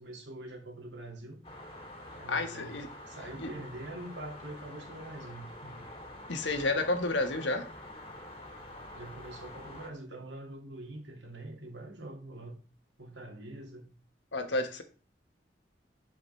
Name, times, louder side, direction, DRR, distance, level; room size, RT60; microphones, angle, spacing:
voice 1, 0.0-1.4 2.1-2.7 3.1-5.9 8.9-12.6 13.0-13.9, right 1 dB, 80° right, 2.3 m, -44 dB
sound 1, 1.4-9.9, left 1 dB, 30° left, 2.0 m, -47 dB
voice 2, 2.3-2.9 3.4-3.5 6.3-7.7 14.3-14.8, left 2 dB, 85° left, 1.4 m, -30 dB
11.5 x 5.0 x 3.3 m
head